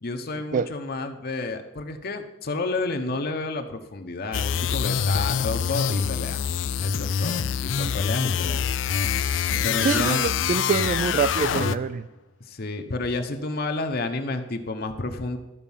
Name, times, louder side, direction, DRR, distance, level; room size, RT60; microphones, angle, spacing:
voice 1, 0.0-6.4 6.8-8.7 9.6-10.5 12.5-15.4, left 2 dB, 55° left, 5 dB, 1.0 m, -30 dB
sound 1, 4.3-12.0, left 7 dB, 90° left, 0.4 m, -25 dB
voice 2, 9.8-12.1, right 5 dB, 45° right, 13 dB, 0.3 m, -25 dB
12.5 x 5.2 x 7.2 m, 1.0 s
head